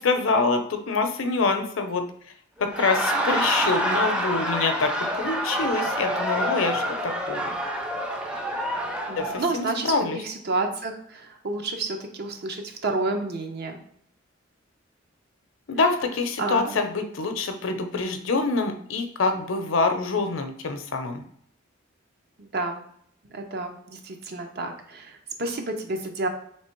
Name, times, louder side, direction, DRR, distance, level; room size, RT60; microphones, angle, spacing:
voice 1, 0.0-2.0 2.6-7.6 9.2-10.2 15.7-21.2, left 3 dB, 65° left, 7 dB, 0.6 m, -25 dB
Laughter, 2.6-9.5, equal, 5° right, 0.5 m, -27 dB
voice 2, 9.1-13.8 16.4-16.8 22.4-22.8 23.3-26.3, right 2 dB, 50° right, 5 dB, 0.7 m, -30 dB
3.3 x 3.2 x 4.4 m, 0.67 s
head